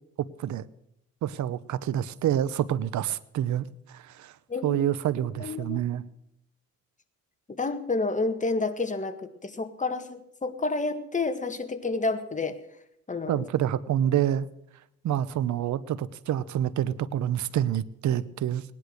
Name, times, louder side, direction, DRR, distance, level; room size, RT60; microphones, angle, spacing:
voice 1, 0.2-0.6 1.2-4.3 4.6-6.0 13.3-14.5 15.0-18.6, right 11 dB, 70° right, 18 dB, 0.9 m, -27 dB
voice 2, 4.5-4.8 5.4-5.8 7.5-12.6 13.1-13.4, left 3 dB, 25° left, 8 dB, 1.8 m, -29 dB
19.0 x 10.5 x 6.5 m, 0.77 s
cardioid pair, 90°, 30 cm